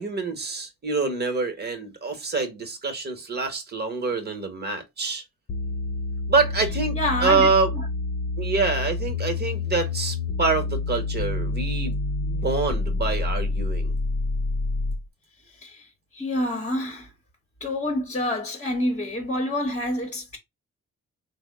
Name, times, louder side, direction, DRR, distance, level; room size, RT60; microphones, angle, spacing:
voice 1, 0.0-5.2 6.3-7.7 8.4-13.9, right 4 dB, 35° right, 1.1 m, -26 dB
sound 1, 5.5-15.1, left 3 dB, 45° left, 0.6 m, -28 dB
voice 2, 6.9-7.8 15.6-15.9 16.1-17.1 17.6-20.4, left 1 dB, 25° left, 1.0 m, -27 dB
3.4 x 2.1 x 3.5 m
cardioid pair, 60°, 30 cm